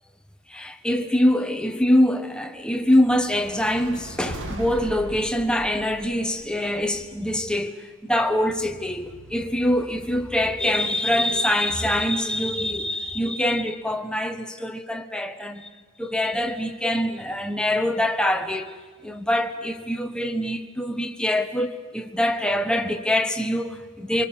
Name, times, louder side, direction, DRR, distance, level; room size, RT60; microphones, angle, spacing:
voice 1, 0.5-15.7 16.0-18.7 19.0-24.3, left 1 dB, 5° left, 1.2 m, -24 dB
sound 1, 3.1-7.4, right 1 dB, 60° right, 2.2 m, -38 dB
25.5 x 23.0 x 7.4 m
head